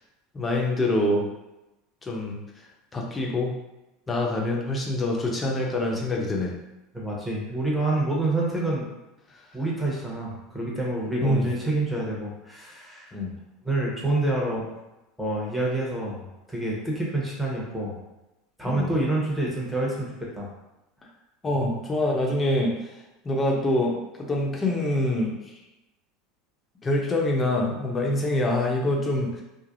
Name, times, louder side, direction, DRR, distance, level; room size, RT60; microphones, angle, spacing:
voice 1, 0.3-1.3 2.0-2.4 2.9-3.5 4.1-6.5 11.2-11.5 13.1-13.3 18.7-18.9 21.4-22.7 23.2-25.4 26.8-29.4, left 1 dB, 25° left, -1 dB, 0.7 m, -25 dB
voice 2, 6.9-8.9 9.5-13.1 13.6-14.7 15.2-18.0 18.6-20.5, right 2 dB, 5° right, -4 dB, 1.0 m, -27 dB
3.3 x 2.1 x 2.5 m, 0.96 s
hypercardioid pair, 95°, 0 cm